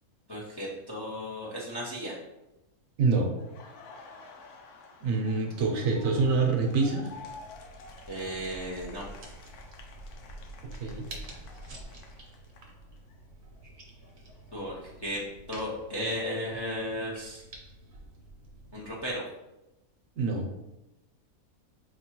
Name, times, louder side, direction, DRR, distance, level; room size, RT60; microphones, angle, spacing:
voice 1, 0.3-2.2 8.1-9.1 14.5-15.2 15.5-17.4 18.7-19.2, equal, 25° left, -4 dB, 0.5 m, -35 dB
voice 2, 3.0-3.3 5.0-7.1 10.8-11.1 20.2-20.5, right 4 dB, 70° right, 2 dB, 1.0 m, -26 dB
Laughter, 3.4-13.2 13.5-15.5, left 3 dB, 85° left, 1.1 m, -51 dB
sound 1, 7.1-19.1, right 1 dB, 45° right, 0.7 m, -48 dB
4.6 x 2.9 x 3.0 m, 0.95 s
omnidirectional pair, 1.6 m